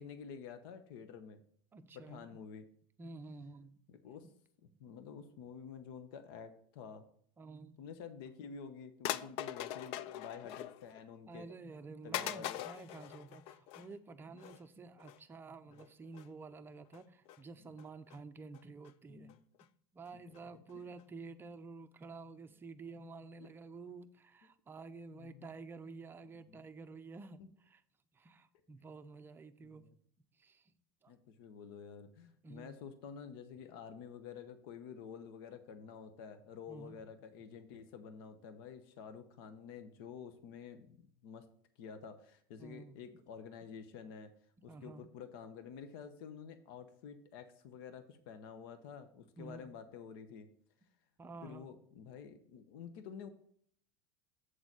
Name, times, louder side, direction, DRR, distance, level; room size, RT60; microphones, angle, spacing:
voice 1, 0.0-1.4 1.9-2.7 3.9-4.3 4.8-7.0 7.8-11.5 12.0-12.6 15.7-15.9 17.6-17.7 19.1-19.4 20.5-20.9 23.4-23.5 24.4-24.5 25.1-25.6 26.5-26.6 27.4-27.5 29.6-30.0 31.1-41.4 41.8-44.3 44.6-50.5 51.4-53.3, left 7 dB, 70° left, 9 dB, 0.9 m, -50 dB
voice 2, 1.7-2.3 3.0-3.8 7.4-7.8 9.2-9.3 11.3-19.3 19.9-27.8 28.2-29.8 30.4-30.6 31.0-31.1 32.4-32.8 36.7-37.0 42.6-43.0 44.7-45.0 49.4-49.7 51.2-51.7, right 3 dB, 15° right, 9 dB, 0.5 m, -50 dB
sound 1, 8.3-8.4 9.0-11.0 11.4-11.5 12.1-13.9 14.4-14.6 15.0-15.2 15.7-15.9 16.1-16.3 16.9-17.4 17.8-18.2 18.5-18.9 19.3-19.4 19.6-19.7 20.0-20.1 20.3-20.4 20.7-20.8 21.0-21.1, left 12 dB, 50° left, 0.4 m, -42 dB
7.8 x 4.0 x 6.0 m, 0.62 s
supercardioid pair, 125°, 12 cm